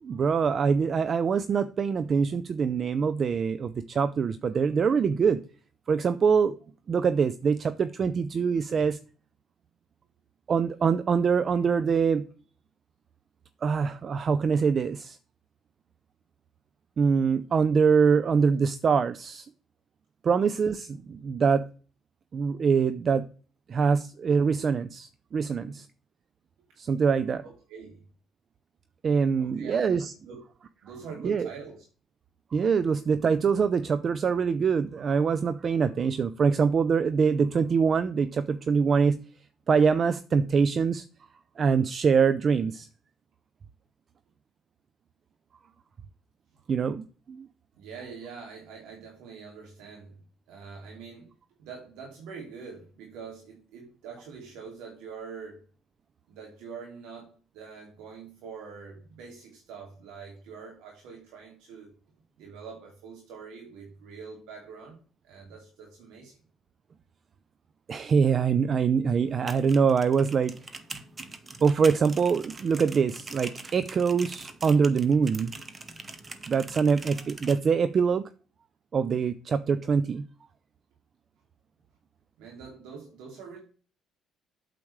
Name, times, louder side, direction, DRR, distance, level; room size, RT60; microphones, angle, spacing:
voice 1, 0.0-5.4 5.9-6.5 6.9-9.0 10.5-12.3 13.6-15.2 17.0-19.5 20.2-21.6 22.3-23.2 23.7-25.9 26.8-27.4 29.0-30.1 31.2-31.5 32.5-39.2 39.7-41.0 41.6-42.9 46.7-47.5 67.9-70.5 71.6-75.5 76.5-78.2 78.9-80.3, right 6 dB, 45° right, 13 dB, 0.6 m, -24 dB
voice 2, 27.4-28.0 29.4-30.0 30.3-30.4 30.8-31.8 47.8-50.2 50.5-51.3 51.6-55.6 56.3-61.9 62.4-64.9 65.2-66.4 82.4-83.6, right 5 dB, 80° right, 0 dB, 2.5 m, -44 dB
sound 1, 69.3-77.6, right 3 dB, 25° right, 1.2 m, -43 dB
8.8 x 7.6 x 3.2 m, 0.38 s
supercardioid pair, 75°, 0 cm